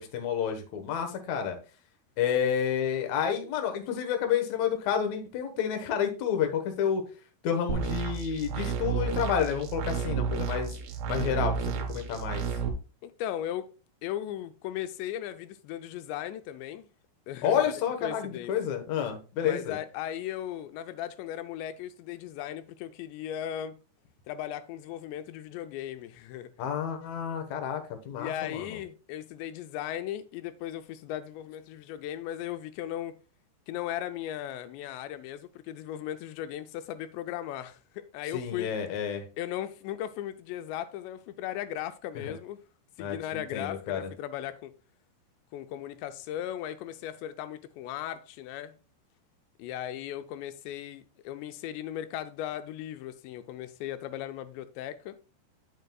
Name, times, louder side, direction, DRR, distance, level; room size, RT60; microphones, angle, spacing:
voice 1, 0.0-1.6 2.2-7.0 7.4-10.7 11.1-12.4 17.4-19.8 26.6-28.8 38.3-39.2 42.2-42.3 43.0-44.1, left 8 dB, 70° left, 1.7 m, -30 dB
sound 1, 7.7-12.7, right 6 dB, 70° right, 2.7 m, -31 dB
voice 2, 13.0-13.7 14.0-16.9 17.3-17.7 18.0-18.5 19.4-23.8 24.3-26.5 28.2-33.2 33.7-38.7 39.4-42.6 43.0-44.7 45.5-48.7 49.6-55.2, left 11 dB, 85° left, 2.9 m, -37 dB
9.3 x 7.5 x 2.3 m
omnidirectional pair, 5.0 m